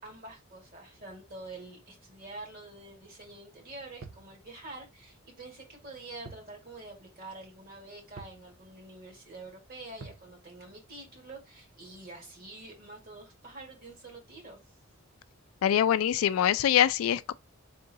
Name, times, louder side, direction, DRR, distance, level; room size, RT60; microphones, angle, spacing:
voice 1, 0.0-14.6, right 2 dB, 45° right, 1.7 m, -47 dB
sound 1, 4.0-4.3 6.2-6.5 6.8-6.9 8.2-8.4 10.0-10.3, right 4 dB, 85° right, 0.6 m, -46 dB
voice 2, 15.6-17.3, left 10 dB, 80° left, 0.3 m, -24 dB
3.7 x 2.6 x 4.0 m
head